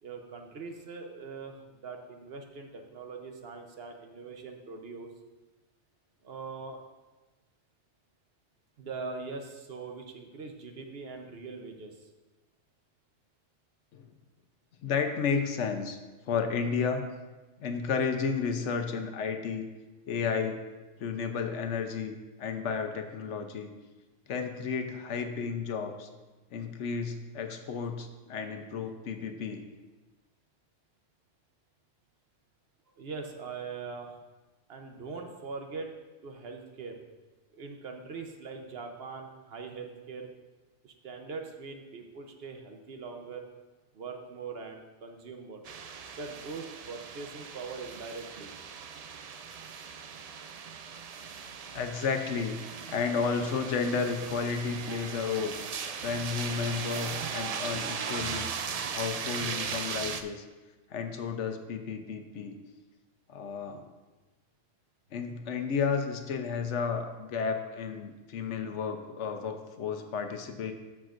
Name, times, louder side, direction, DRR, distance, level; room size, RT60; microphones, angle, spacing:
voice 1, 0.0-1.6 1.8-5.1 6.2-6.8 8.8-12.1 33.0-34.2 34.7-35.9 36.2-37.0 37.5-40.3 40.8-43.5 43.9-45.6 46.1-48.5, right 4 dB, 60° right, 4 dB, 1.0 m, -42 dB
voice 2, 14.8-16.0 16.3-17.0 17.6-19.7 20.1-20.6 21.0-23.7 24.3-26.1 26.5-29.6 51.7-55.5 56.0-58.5 58.9-60.4 60.9-62.6 63.3-63.9 65.1-70.7, left 5 dB, 75° left, 6 dB, 1.1 m, -32 dB
sound 1, 45.6-60.2, right 6 dB, 80° right, 0.3 m, -38 dB
13.5 x 6.0 x 2.5 m, 1.2 s
omnidirectional pair, 1.2 m